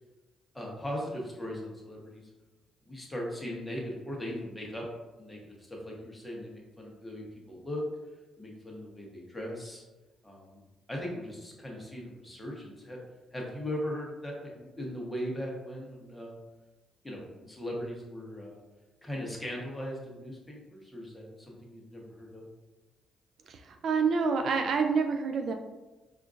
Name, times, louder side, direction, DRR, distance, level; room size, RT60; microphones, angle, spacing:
voice 1, 0.5-2.3 2.8-4.9 5.2-7.8 8.4-9.8 10.2-10.6 10.9-13.0 13.3-16.4 17.0-18.6 19.0-22.5, equal, 10° left, -2 dB, 1.0 m, -39 dB
voice 2, 23.5-25.5, right 5 dB, 60° right, 5 dB, 0.3 m, -27 dB
4.3 x 2.5 x 2.4 m, 1.1 s
cardioid pair, 90°, 0 cm